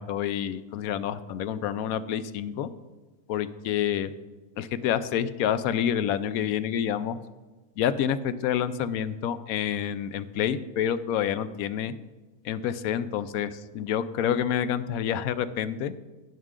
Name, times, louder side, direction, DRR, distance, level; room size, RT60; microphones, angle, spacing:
voice 1, 0.0-2.7 3.3-4.1 4.6-7.2 7.8-11.9 12.4-15.9, left 9 dB, 75° left, 13 dB, 1.0 m, -28 dB
16.5 x 6.1 x 3.7 m, 1.2 s
omnidirectional pair, 1.6 m